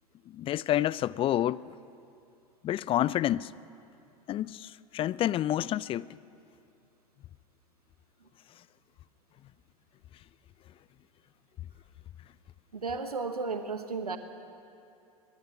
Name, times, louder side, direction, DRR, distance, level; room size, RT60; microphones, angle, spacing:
voice 1, 0.3-1.6 2.6-3.5 4.3-6.0, left 12 dB, 30° left, 0.4 m, -28 dB
voice 2, 12.7-14.2, right 4 dB, 90° right, 1.2 m, -33 dB
24.0 x 22.0 x 6.0 m
figure-of-eight pair, 90°, 19 cm